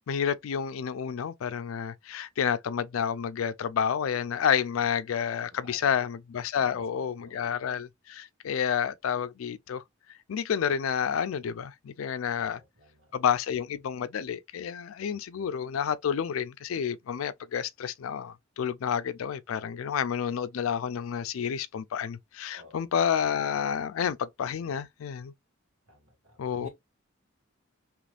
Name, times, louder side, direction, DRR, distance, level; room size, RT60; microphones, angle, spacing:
voice 1, 0.1-9.8 10.3-12.6 13.1-25.3 26.4-26.7, left 8 dB, 85° left, 0.4 m, -30 dB
voice 2, 5.6-6.0 6.5-7.6 12.3-13.1 22.5-22.9 25.9-26.7, equal, 90° right, 1.8 m, -52 dB
3.3 x 3.0 x 2.4 m
head